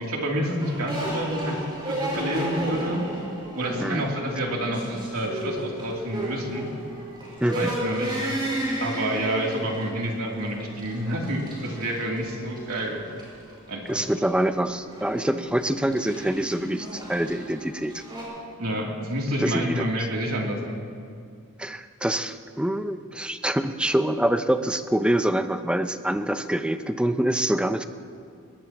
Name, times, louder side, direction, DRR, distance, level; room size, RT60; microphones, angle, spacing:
voice 1, 0.0-1.6 1.8-3.0 3.5-6.7 7.5-8.2 8.8-13.0 13.7-14.1 18.6-20.8, right 1 dB, 90° right, -2 dB, 3.0 m, -28 dB
sound 1, 0.6-18.2, right 1 dB, 20° right, 5.3 m, -34 dB
voice 2, 7.4-7.7 13.9-18.0 19.4-19.9 21.6-27.8, right 1 dB, 5° right, 9 dB, 0.5 m, -25 dB
21.0 x 21.0 x 3.0 m, 2.3 s
head